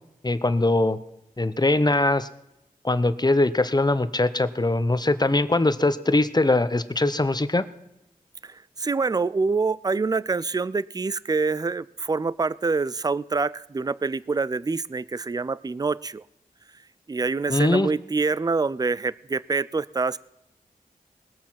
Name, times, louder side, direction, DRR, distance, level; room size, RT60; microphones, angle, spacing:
voice 1, 0.2-1.0 1.4-2.3 2.8-7.6 17.5-17.9, left 2 dB, 30° left, 13 dB, 0.9 m, -21 dB
voice 2, 8.4-16.2 17.1-20.2, right 4 dB, 25° right, 20 dB, 0.4 m, -26 dB
20.0 x 7.2 x 5.8 m, 0.86 s
cardioid pair, 45°, 15 cm